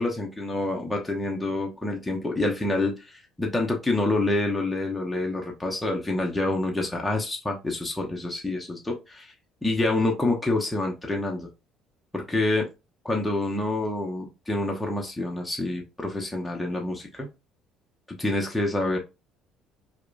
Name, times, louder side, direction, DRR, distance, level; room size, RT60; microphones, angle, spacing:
voice 1, 0.0-9.3 9.6-11.5 12.1-12.7 13.0-17.3 18.1-19.0, left 2 dB, 10° left, 0 dB, 1.0 m, -27 dB
4.6 x 2.3 x 2.5 m, 0.25 s
supercardioid pair, 85°, 0 cm